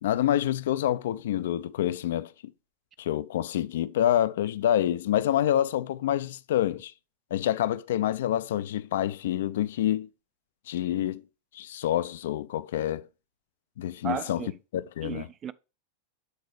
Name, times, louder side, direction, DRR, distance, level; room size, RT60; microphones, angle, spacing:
voice 1, 0.0-2.3 3.0-6.9 7.3-10.1 10.7-11.2 11.5-13.1 13.8-14.4 14.7-15.3, left 11 dB, 60° left, 0.3 m, -27 dB
voice 2, 14.0-14.5 15.0-15.5, right 9 dB, 25° right, 0.4 m, -34 dB
8.0 x 4.1 x 4.5 m
figure-of-eight pair, 90°, 0 cm